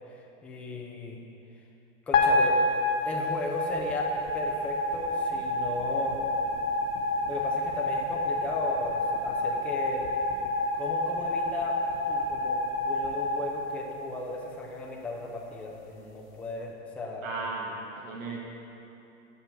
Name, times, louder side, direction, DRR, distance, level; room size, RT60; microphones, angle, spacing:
voice 1, 0.1-1.2 2.1-2.6 3.0-6.3 7.3-10.1 10.8-11.8 12.1-17.3, left 2 dB, 5° left, -2 dB, 0.3 m, -36 dB
sound 1, 2.1-14.4, left 2 dB, 85° left, 1.1 m, -28 dB
voice 2, 17.2-18.4, right 3 dB, 75° right, -2 dB, 1.6 m, -35 dB
7.3 x 5.5 x 6.1 m, 2.8 s
supercardioid pair, 135°, 39 cm